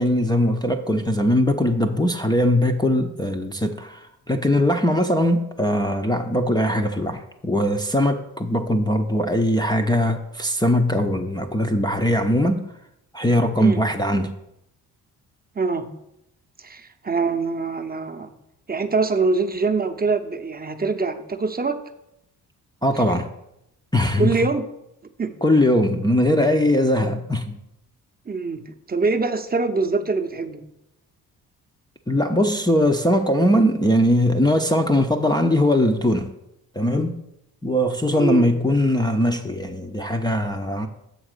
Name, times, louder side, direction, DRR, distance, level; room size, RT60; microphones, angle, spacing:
voice 1, 0.0-12.6 13.1-14.3 22.8-23.3 23.9-24.4 25.4-27.6 32.1-36.3 36.7-37.2 37.6-40.9, left 1 dB, 10° left, 0.6 m, -20 dB
voice 2, 15.6-15.9 16.6-18.3 18.7-21.8 24.2-24.6 25.2-25.3 28.3-30.7 38.1-38.5, right 4 dB, 20° right, 0.8 m, -24 dB
7.2 x 4.0 x 6.4 m
hypercardioid pair, 40°, 46 cm